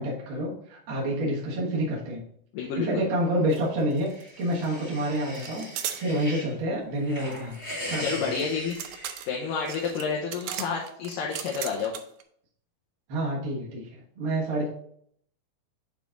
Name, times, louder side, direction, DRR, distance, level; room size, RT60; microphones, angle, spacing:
voice 1, 0.0-2.2 2.8-5.7 6.0-7.6 7.9-8.3 13.1-14.7, right 1 dB, 50° right, -5 dB, 1.6 m, -28 dB
voice 2, 2.5-3.0 8.0-8.8 9.3-11.9, left 5 dB, 75° left, -1 dB, 2.4 m, -29 dB
sound 1, 3.5-3.7 3.9-4.7 5.4-6.0 7.3-12.2, right 10 dB, 90° right, 1.6 m, -37 dB
sound 2, 3.8-6.5 6.9-9.8, equal, 15° left, 2.2 m, -40 dB
7.1 x 4.1 x 3.7 m, 0.66 s
omnidirectional pair, 4.0 m